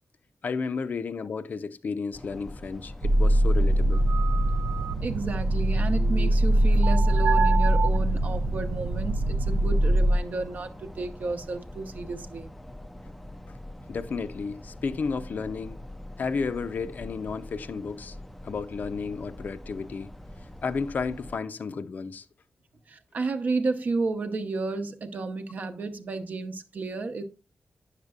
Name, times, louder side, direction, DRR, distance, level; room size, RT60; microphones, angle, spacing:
voice 1, 0.4-4.0 13.9-15.8 16.2-18.2 18.4-20.1 20.6-22.3, left 5 dB, 60° left, 0.5 m, -32 dB
sound 1, 2.1-21.4, left 1 dB, 5° left, 0.4 m, -43 dB
sound 2, 3.0-10.2, right 1 dB, 80° right, 0.4 m, -22 dB
voice 2, 5.0-12.5 22.9-27.2, right 3 dB, 55° right, 0.8 m, -32 dB
9.5 x 6.6 x 2.4 m
wide cardioid pair, 180°, 3 cm